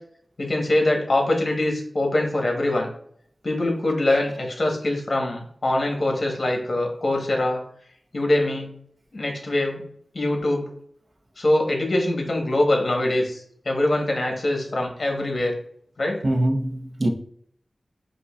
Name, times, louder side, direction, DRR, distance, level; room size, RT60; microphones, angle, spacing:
voice 1, 0.4-2.9 3.4-7.6 8.1-8.7 9.1-9.8 10.1-10.7 11.4-15.5 16.0-16.2, left 1 dB, 65° left, 1.0 m, -23 dB
voice 2, 16.2-17.1, right 1 dB, 50° right, 0.6 m, -23 dB
5.0 x 2.2 x 2.3 m
wide cardioid pair, 50°, 0 cm